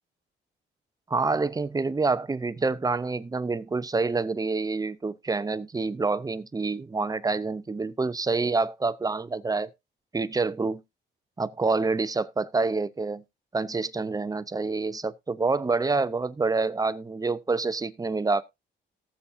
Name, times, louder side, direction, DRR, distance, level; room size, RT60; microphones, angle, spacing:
voice 1, 1.1-9.7 10.1-10.8 11.4-13.2 13.5-18.4, right 3 dB, 20° right, 0.7 m, -27 dB
18.5 x 7.1 x 2.6 m
cardioid pair, 90°, 20 cm